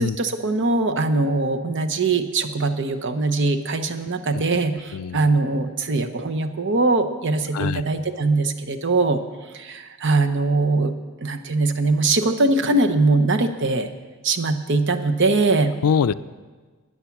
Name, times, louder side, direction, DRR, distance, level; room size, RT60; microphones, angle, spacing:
voice 1, 0.0-9.2 9.5-10.9 11.2-13.9 14.2-15.7, right 3 dB, 55° right, 8 dB, 0.9 m, -21 dB
voice 2, 15.8-16.1, left 6 dB, 85° left, 16 dB, 0.4 m, -22 dB
13.0 x 9.5 x 5.9 m, 1.4 s
head